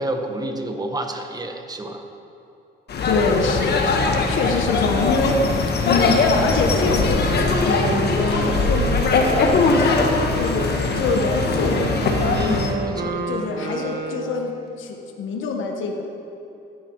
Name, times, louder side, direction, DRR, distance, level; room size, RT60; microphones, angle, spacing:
voice 1, 0.0-2.0 12.3-13.2, right 1 dB, 20° right, 4 dB, 1.4 m, -29 dB
sound 1, 2.9-12.7, left 4 dB, 55° left, 1.4 m, -21 dB
voice 2, 3.0-5.4 5.8-10.7 10.9-11.9 13.2-16.0, left 4 dB, 80° left, 2 dB, 1.3 m, -25 dB
Wind instrument woodwind instrument, 6.5-14.5, right 3 dB, 55° right, 1.2 m, -29 dB
15.0 x 10.0 x 4.6 m, 2.8 s
cardioid pair, 90°, 20 cm